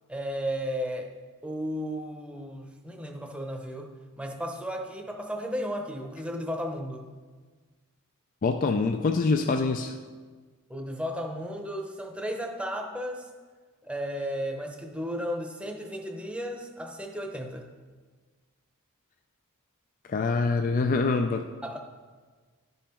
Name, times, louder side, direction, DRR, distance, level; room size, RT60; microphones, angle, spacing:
voice 1, 0.1-1.1 1.4-7.0 10.7-13.3 13.8-17.6 21.6-21.8, equal, 5° right, 2 dB, 0.8 m, -34 dB
voice 2, 8.4-9.9 20.1-21.4, left 4 dB, 40° left, 6 dB, 0.4 m, -25 dB
11.0 x 5.5 x 4.4 m, 1.4 s
head